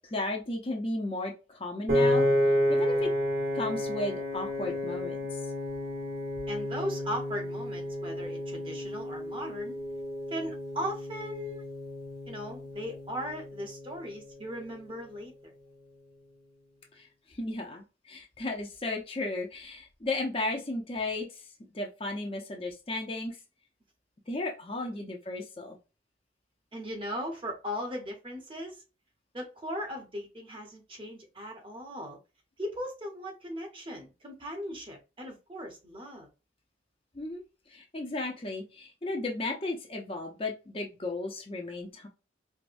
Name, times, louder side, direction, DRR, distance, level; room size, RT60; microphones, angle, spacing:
voice 1, 0.0-2.3 2.7-3.1 3.5-5.2 16.9-21.4 21.7-23.4 24.3-25.8 37.1-37.4 37.7-42.1, left 2 dB, 30° left, 1 dB, 0.6 m, -34 dB
Piano, 1.9-14.1, left 1 dB, 60° right, 1.6 m, -31 dB
voice 2, 6.5-9.7 10.3-11.6 12.3-15.3 24.9-25.1 26.7-28.8 29.3-32.2 32.6-36.3, equal, 30° right, 1 dB, 0.9 m, -38 dB
4.7 x 2.1 x 2.6 m, 0.30 s
head